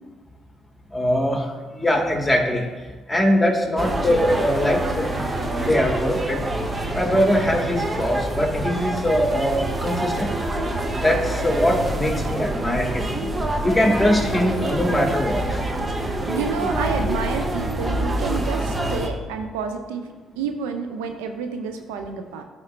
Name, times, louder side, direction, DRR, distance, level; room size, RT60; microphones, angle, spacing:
voice 1, 0.9-2.6 3.1-5.3 5.6-6.4 6.9-10.3 10.9-13.1 13.6-15.6, equal, 10° left, 0 dB, 1.8 m, -22 dB
sound 1, 3.8-19.1, right 1 dB, 25° right, 0.9 m, -26 dB
voice 2, 16.3-22.4, right 6 dB, 85° right, 6 dB, 0.5 m, -29 dB
11.5 x 4.2 x 2.6 m, 1.4 s
hypercardioid pair, 55°, 0 cm